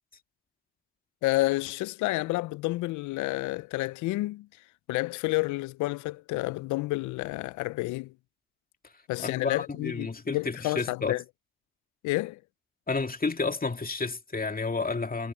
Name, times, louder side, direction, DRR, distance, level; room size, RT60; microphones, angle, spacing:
voice 1, 1.2-4.5 4.9-8.1 9.1-11.2 12.0-12.4, left 20 dB, 85° left, 0.5 m, -30 dB
voice 2, 9.2-11.1 12.9-15.3, left 4 dB, 30° left, 2.4 m, -31 dB
supercardioid pair, 50°, 29 cm